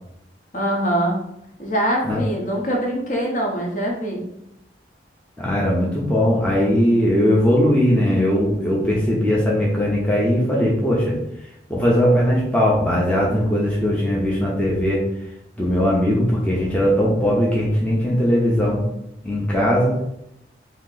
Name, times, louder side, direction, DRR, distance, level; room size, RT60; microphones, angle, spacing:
voice 1, 0.5-1.2 1.6-4.2, right 1 dB, 45° left, -1 dB, 0.8 m, -23 dB
voice 2, 5.4-11.2 11.7-15.0 15.6-18.8 19.2-19.9, equal, 5° left, -5 dB, 0.6 m, -19 dB
2.9 x 2.8 x 3.8 m, 0.80 s
head